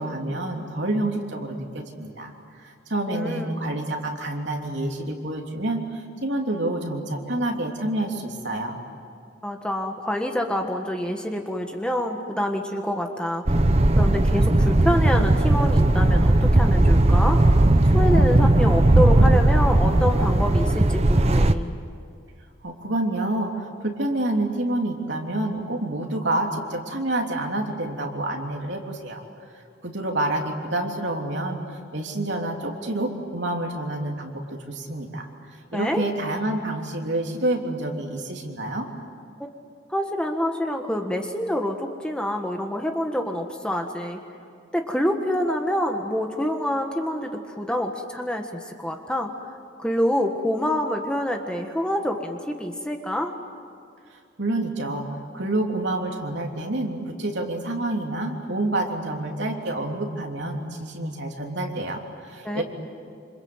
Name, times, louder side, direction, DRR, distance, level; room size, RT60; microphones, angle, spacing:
voice 1, 0.0-2.3 2.6-8.8 22.6-29.2 29.8-35.3 35.7-38.9 54.4-55.1 55.3-62.6, right 1 dB, 65° right, 1 dB, 3.2 m, -28 dB
voice 2, 3.1-3.5 9.4-13.5 13.9-17.4 17.9-21.7 35.7-36.0 39.4-39.5 39.9-44.2 44.7-49.3 49.8-53.3 62.4-62.6, equal, 5° left, 3 dB, 1.6 m, -26 dB
sound 1, 13.5-21.5, right 1 dB, 30° right, 0.8 m, -17 dB
27.5 x 26.5 x 8.1 m, 2.4 s
head